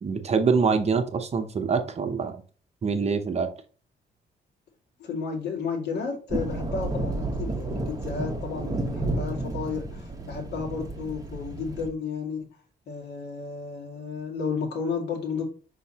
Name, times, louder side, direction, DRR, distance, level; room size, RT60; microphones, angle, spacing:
voice 1, 0.0-2.4 2.8-3.5, right 5 dB, 40° right, 7 dB, 0.9 m, -25 dB
voice 2, 5.0-12.5 12.9-15.4, left 5 dB, 75° left, 1 dB, 2.3 m, -32 dB
sound 1, 6.3-11.9, right 2 dB, 20° right, 1.3 m, -31 dB
6.2 x 5.5 x 2.9 m, 0.36 s
cardioid pair, 120°, 18 cm